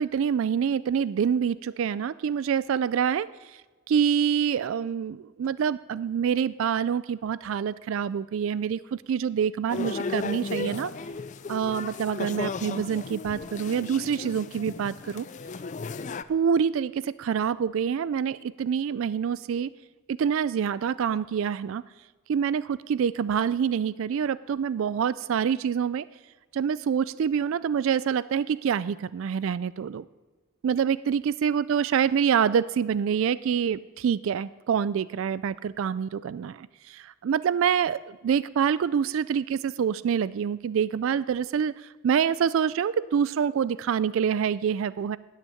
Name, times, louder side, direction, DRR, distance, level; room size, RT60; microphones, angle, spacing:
voice 1, 0.0-3.3 3.9-10.9 11.5-15.3 16.3-19.7 20.1-21.8 22.3-26.1 26.5-30.1 30.6-41.7 42.0-45.2, right 7 dB, 70° right, 18 dB, 0.3 m, -26 dB
sound 1, 9.7-16.2, left 4 dB, 35° left, 0.3 m, -35 dB
13.5 x 6.4 x 9.7 m, 1.3 s
head